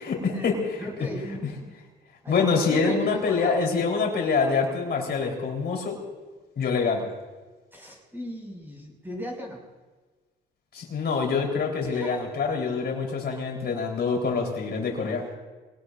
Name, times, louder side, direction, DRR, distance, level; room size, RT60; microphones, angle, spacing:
voice 1, 0.0-0.8 2.3-6.0 6.6-7.0 10.7-15.2, left 5 dB, 55° left, 0 dB, 4.2 m, -25 dB
voice 2, 0.8-1.7 2.2-3.6 7.7-9.6 11.8-12.3, equal, 10° right, -1 dB, 6.2 m, -37 dB
23.5 x 19.0 x 2.7 m, 1.3 s
cardioid pair, 90°, 20 cm